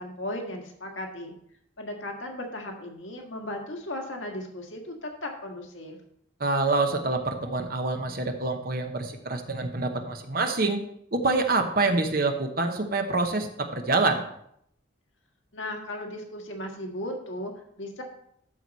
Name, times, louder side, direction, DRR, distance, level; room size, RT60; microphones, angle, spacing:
voice 1, 0.0-1.3 1.8-6.0 15.5-18.0, left 1 dB, 80° left, 2 dB, 1.7 m, -36 dB
voice 2, 6.4-10.8 11.1-14.2, right 3 dB, 50° right, 5 dB, 0.9 m, -26 dB
12.5 x 4.7 x 4.1 m, 0.71 s
head